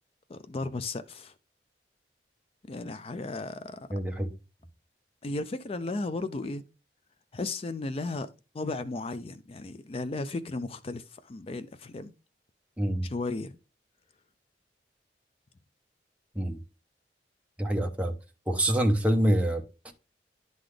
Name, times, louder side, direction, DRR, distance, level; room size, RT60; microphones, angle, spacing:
voice 1, 0.3-1.3 2.7-3.9 5.2-6.6 7.3-8.3 8.5-12.1 13.0-13.6, left 2 dB, 30° left, 0.4 m, -35 dB
voice 2, 3.9-4.3 12.8-13.1 16.3-16.6 17.6-18.1 18.5-19.9, right 1 dB, 5° right, 0.8 m, -26 dB
10.5 x 3.9 x 3.2 m
head